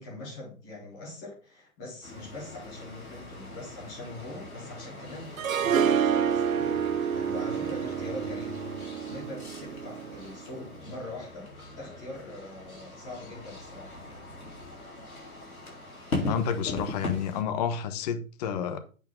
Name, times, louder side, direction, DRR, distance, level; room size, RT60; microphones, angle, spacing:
voice 1, 0.0-11.5 11.8-14.2, left 2 dB, 5° left, 0.4 m, -42 dB
sound 1, 2.0-17.4, left 2 dB, 85° left, 4.1 m, -40 dB
Harp, 5.4-10.4, right 8 dB, 75° right, 0.7 m, -28 dB
voice 2, 16.3-18.8, left 7 dB, 30° left, 1.1 m, -30 dB
8.3 x 4.5 x 5.6 m
figure-of-eight pair, 130°, 42 cm